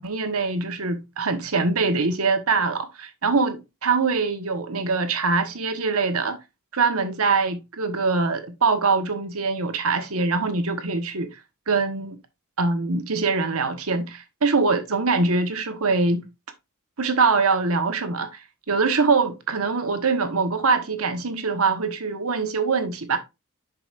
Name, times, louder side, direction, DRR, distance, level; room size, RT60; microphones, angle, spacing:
voice 1, 0.0-6.4 6.7-11.3 11.7-12.2 12.6-16.2 17.0-23.2, right 4 dB, 70° right, 1.2 m, -23 dB
7.9 x 6.0 x 2.5 m
head